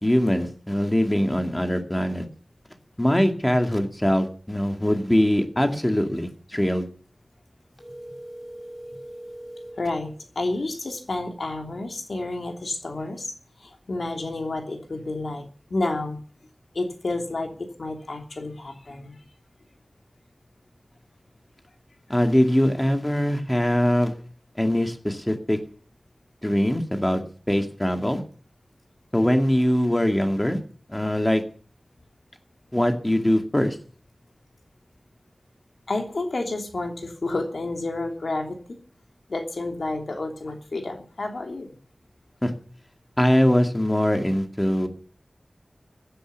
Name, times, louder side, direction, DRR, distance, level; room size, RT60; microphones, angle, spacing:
voice 1, 0.0-2.2 3.0-6.9 22.1-24.1 24.6-25.6 26.4-27.2 27.5-28.2 29.1-30.6 30.9-31.4 32.7-33.8 42.4-42.5 43.2-44.9, equal, 15° left, 5 dB, 2.3 m, -22 dB
sound 1, 7.7-9.8, right 1 dB, 45° left, 7.0 m, -40 dB
voice 2, 9.8-13.3 13.6-16.2 16.7-19.2 35.9-38.8 39.3-41.7, left 2 dB, 75° left, 3 dB, 3.1 m, -30 dB
16.0 x 10.0 x 8.2 m, 0.42 s
wide cardioid pair, 70°, 0 cm